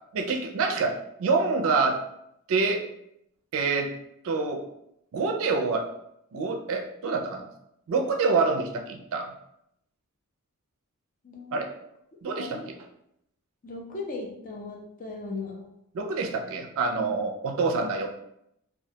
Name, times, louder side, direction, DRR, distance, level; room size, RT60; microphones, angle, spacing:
voice 1, 0.1-2.0 2.5-2.8 3.5-3.9 4.2-4.6 5.1-5.8 6.3-7.5 7.9-9.3 11.5-11.7 12.2-12.7 15.9-18.1, right 4 dB, 65° right, 3 dB, 0.4 m, -26 dB
voice 2, 11.2-11.6 12.4-12.7 13.6-15.7, left 3 dB, 35° left, 0 dB, 0.5 m, -37 dB
2.3 x 2.2 x 2.7 m, 0.77 s
head